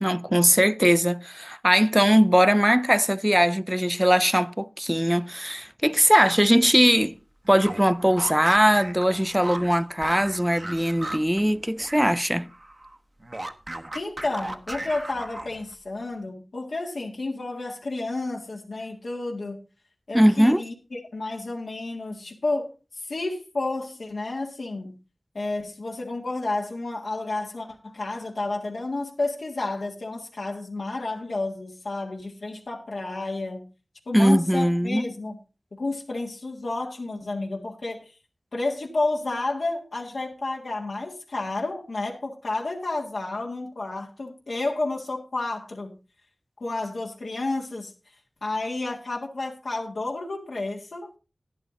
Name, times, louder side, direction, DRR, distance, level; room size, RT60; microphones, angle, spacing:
voice 1, 0.0-7.2 7.5-12.5 20.1-20.6 34.1-35.0, equal, 10° right, 0.5 m, -20 dB
sound 1, 7.4-12.2 12.4-15.7, right 1 dB, 40° right, 1.0 m, -37 dB
voice 2, 13.9-19.6 20.1-22.7 22.9-25.0 25.3-33.7 34.1-35.4 35.7-38.1 38.5-46.0 46.6-47.9 48.4-51.2, left 2 dB, 90° left, 1.6 m, -31 dB
11.0 x 10.0 x 3.8 m
cardioid pair, 40°, 0 cm